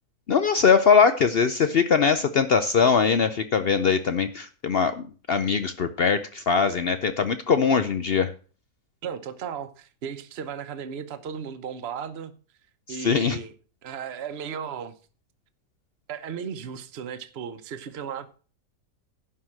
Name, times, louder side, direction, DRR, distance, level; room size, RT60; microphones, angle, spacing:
voice 1, 0.3-8.3 12.9-13.4, left 6 dB, 70° left, 0.5 m, -21 dB
voice 2, 9.0-12.3 12.9-13.5 13.8-14.9 16.1-18.4, right 7 dB, 45° right, 1.0 m, -35 dB
11.0 x 4.8 x 7.5 m
omnidirectional pair, 1.8 m